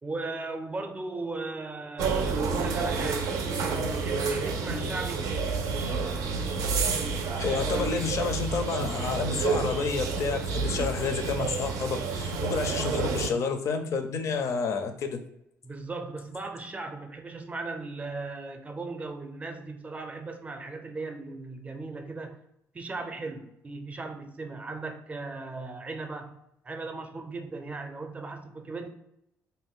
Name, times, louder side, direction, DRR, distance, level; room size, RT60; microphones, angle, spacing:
voice 1, 0.0-3.3 3.9-5.2 15.6-22.4 22.7-26.4 26.6-28.9, right 3 dB, 25° right, 5 dB, 0.5 m, -37 dB
sound 1, 2.0-13.3, right 4 dB, 80° right, 0.4 m, -29 dB
voice 2, 7.4-15.2, left 5 dB, 60° left, 7 dB, 0.5 m, -30 dB
2.6 x 2.2 x 3.6 m, 0.81 s
cardioid pair, 90°, 6 cm